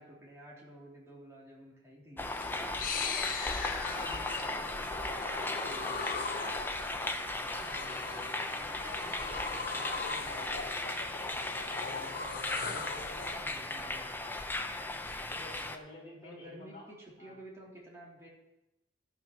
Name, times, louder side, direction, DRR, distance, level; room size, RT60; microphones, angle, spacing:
voice 1, 0.0-2.3 8.5-10.9 16.2-18.3, right 1 dB, 15° right, -6 dB, 3.6 m, -51 dB
sound 1, 2.2-15.8, left 2 dB, 10° left, 0.7 m, -37 dB
sound 2, 2.3-13.4, left 5 dB, 50° left, 0.8 m, -40 dB
voice 2, 3.7-6.2 7.5-8.6 11.6-14.1 15.3-16.9 17.2-17.4, left 1 dB, 30° left, -2 dB, 3.5 m, -51 dB
13.0 x 6.1 x 6.0 m, 0.91 s
head